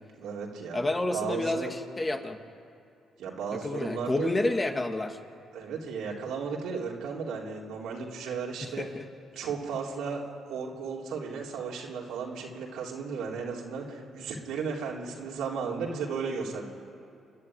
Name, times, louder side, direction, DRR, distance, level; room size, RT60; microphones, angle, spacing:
voice 1, 0.0-0.8 1.1-1.7 3.2-4.3 5.5-8.9 9.3-10.2 10.5-16.7, right 5 dB, 80° right, -2 dB, 3.7 m, -35 dB
voice 2, 0.7-2.4 3.6-5.2 8.8-9.0, left 2 dB, 25° left, 5 dB, 2.1 m, -29 dB
29.0 x 11.0 x 9.9 m, 2.7 s
supercardioid pair, 60°, 0 cm